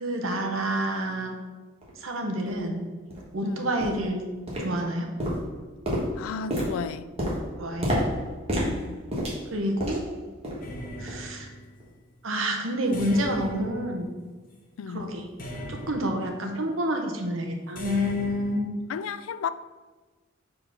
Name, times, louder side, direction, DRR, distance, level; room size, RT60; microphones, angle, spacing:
voice 1, 0.0-1.4 2.0-2.8 3.3-4.2 4.6-5.1 7.6-8.0 9.5-10.0 11.0-11.5 12.2-14.1 14.9-15.3 15.7-18.7, equal, 75° right, 0.9 m, -28 dB
sound 1, 1.8-1.9 2.5-2.6 3.1-3.3 3.8-4.1 4.5-4.9 5.2-10.1 10.4-10.7 11.1-11.3 11.8-11.9, equal, 30° right, 1.4 m, -30 dB
voice 2, 3.4-3.7 6.2-7.0 8.7-9.0 14.8-15.1 18.9-19.5, left 6 dB, 85° left, 0.3 m, -33 dB
sound 2, 10.6-11.9 12.9-14.6 15.4-16.5 17.8-18.6, left 1 dB, 45° left, 1.0 m, -39 dB
4.9 x 3.9 x 5.5 m
head